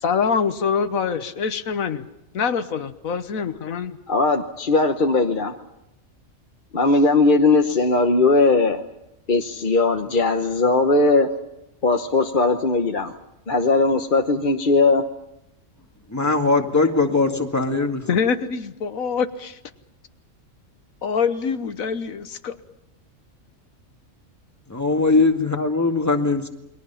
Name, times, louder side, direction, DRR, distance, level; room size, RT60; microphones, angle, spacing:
voice 1, 0.0-2.1 2.3-4.0 18.1-19.6 21.0-22.6, left 6 dB, 90° left, 10 dB, 1.5 m, -24 dB
voice 2, 4.1-5.5 6.7-8.8 9.3-11.3 11.8-13.1 13.5-15.0, left 3 dB, 40° left, 4 dB, 1.1 m, -19 dB
voice 3, 16.1-18.0 24.7-26.5, left 3 dB, 10° left, 3 dB, 2.0 m, -20 dB
29.0 x 22.5 x 5.7 m, 0.88 s
omnidirectional pair, 1.4 m